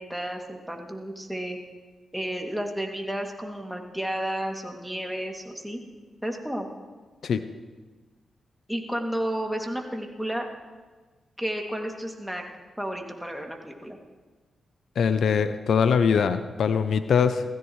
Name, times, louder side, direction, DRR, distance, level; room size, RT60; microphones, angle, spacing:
voice 1, 0.0-1.6 2.1-5.9 6.2-6.7 8.7-10.5 11.4-12.4 12.8-14.0, right 1 dB, ahead, 1 dB, 2.5 m, -32 dB
voice 2, 15.0-17.4, left 6 dB, 75° left, 11 dB, 0.6 m, -22 dB
17.5 x 15.0 x 3.2 m, 1.3 s
supercardioid pair, 45°, 0 cm